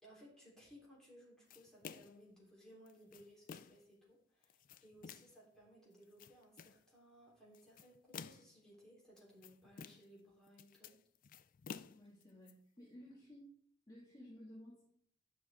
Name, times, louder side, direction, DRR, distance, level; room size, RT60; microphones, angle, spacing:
voice 1, 0.0-11.0, equal, 5° left, -6 dB, 3.5 m, -61 dB
sound 1, 1.5-2.3 2.9-3.9 4.4-5.4 6.0-6.8 7.5-8.6 9.2-10.2 10.5-12.5, left 7 dB, 50° left, 0.3 m, -52 dB
voice 2, 11.9-13.5 13.9-14.8, equal, 20° left, -7 dB, 2.1 m, -56 dB
10.0 x 6.1 x 3.6 m, 0.63 s
head